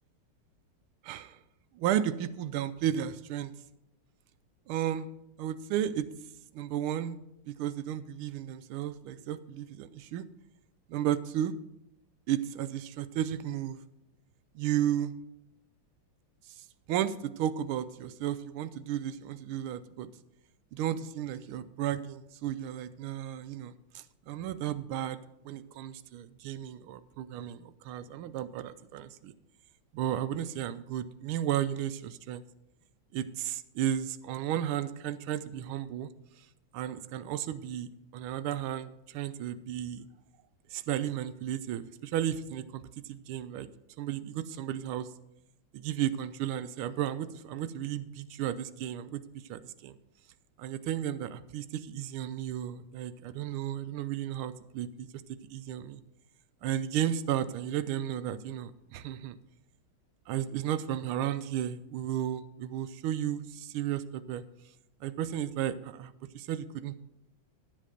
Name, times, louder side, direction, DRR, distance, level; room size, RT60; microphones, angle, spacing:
voice 1, 1.0-1.4 1.7-3.5 4.7-5.1 5.4-6.1 6.5-7.2 7.4-10.2 10.9-11.5 12.3-13.8 14.5-15.1 16.6-20.1 20.7-29.3 29.9-32.4 33.1-36.1 36.7-40.1 40.7-42.8 43.1-43.7 44.0-45.1 45.7-49.2 49.5-49.9 50.6-55.1 55.5-56.0 56.6-59.4 60.3-64.4 65.0-67.0, right 11 dB, 85° right, 13 dB, 1.5 m, -33 dB
11.5 x 7.5 x 5.1 m, 0.85 s
omnidirectional pair, 2.3 m